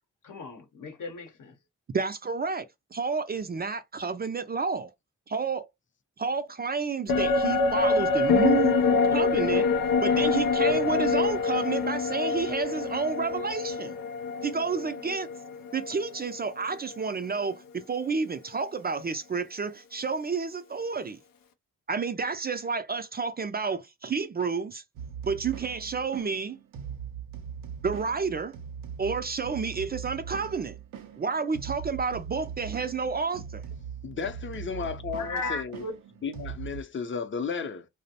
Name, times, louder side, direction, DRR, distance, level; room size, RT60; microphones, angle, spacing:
voice 1, 0.2-1.5 35.2-35.9, left 3 dB, 70° left, 0.8 m, -36 dB
voice 2, 1.9-2.7 2.9-4.9 5.3-5.7 6.2-8.8 9.1-9.7 10.0-14.0 14.4-15.3 15.7-21.2 21.9-24.8 25.3-26.6 27.8-28.5 29.0-30.8 31.2-33.6, right 5 dB, 30° right, 0.4 m, -30 dB
sound 1, 7.1-16.6 16.9-17.0, left 4 dB, 90° left, 0.5 m, -25 dB
sound 2, 25.0-36.8, right 8 dB, 90° right, 0.5 m, -40 dB
voice 3, 34.0-35.8 36.2-37.9, left 5 dB, 35° left, 0.6 m, -34 dB
2.5 x 2.0 x 2.7 m
cardioid pair, 50°, 33 cm